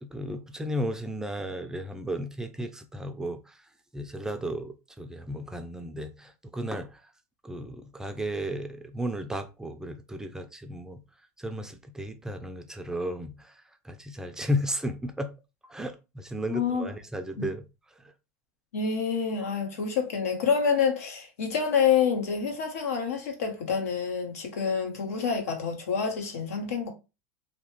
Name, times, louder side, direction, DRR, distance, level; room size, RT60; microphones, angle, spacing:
voice 1, 0.0-3.6 3.9-7.0 7.4-11.0 11.4-13.5 13.8-15.3 15.6-17.7 18.0-18.1, equal, 5° right, 0.3 m, -34 dB
voice 2, 16.5-16.9 17.4-17.5 18.7-26.9, left 6 dB, 90° left, 0.9 m, -27 dB
2.9 x 2.1 x 3.0 m
supercardioid pair, 120°, 8 cm